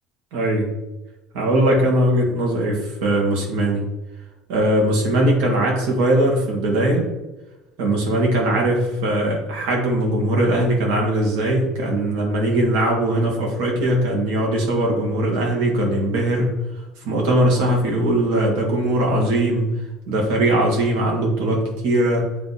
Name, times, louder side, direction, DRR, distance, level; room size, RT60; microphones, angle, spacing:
voice 1, 0.3-0.7 1.3-3.8 4.5-7.1 7.8-16.5 17.0-19.7 20.1-22.3, right 1 dB, 85° right, -1 dB, 1.9 m, -20 dB
8.2 x 3.4 x 4.1 m, 1.0 s
cardioid pair, 155°, 0 cm